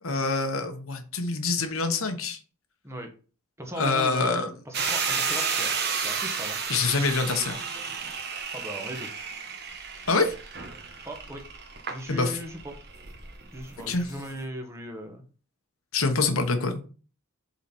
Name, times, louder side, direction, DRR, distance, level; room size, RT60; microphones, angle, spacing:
voice 1, 0.0-2.4 3.7-4.5 6.7-7.7 10.1-10.3 12.1-12.4 13.9-14.0 15.9-16.8, left 3 dB, 70° left, 6 dB, 1.1 m, -26 dB
voice 2, 3.6-5.7 6.0-6.6 8.5-9.1 11.0-11.4 11.9-12.7 13.5-15.2 16.2-16.3, equal, 15° right, 3 dB, 1.2 m, -38 dB
sound 1, 4.7-14.4, right 5 dB, 50° right, 1.2 m, -32 dB
7.2 x 4.0 x 4.4 m, 0.38 s
head